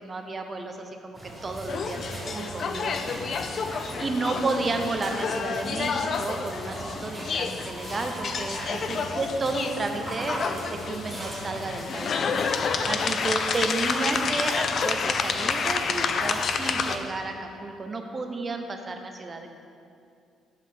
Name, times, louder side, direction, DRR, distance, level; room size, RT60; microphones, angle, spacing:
voice 1, 0.0-2.0 2.3-3.2 4.0-8.6 8.9-12.2 12.8-19.5, right 3 dB, 25° right, 5 dB, 0.6 m, -32 dB
sound 1, 1.1-17.0, right 1 dB, 5° right, 1.3 m, -39 dB
sound 2, 1.7-17.0, left 5 dB, 40° left, 0.4 m, -29 dB
voice 2, 3.5-3.9 8.5-8.7 12.9-13.1, equal, 10° left, -11 dB, 1.7 m, -44 dB
7.1 x 5.7 x 5.5 m, 2.5 s
cardioid pair, 145°, 0 cm